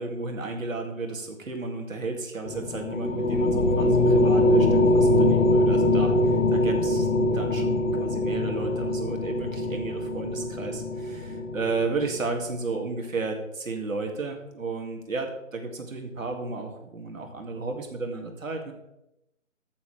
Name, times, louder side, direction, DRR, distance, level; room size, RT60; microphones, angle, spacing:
voice 1, 0.0-7.1 7.3-18.7, right 3 dB, 85° right, 3 dB, 2.3 m, -33 dB
sound 1, 2.5-12.2, left 1 dB, 75° left, 1.7 m, -23 dB
13.5 x 7.0 x 3.3 m, 0.89 s
hypercardioid pair, 160°, 39 cm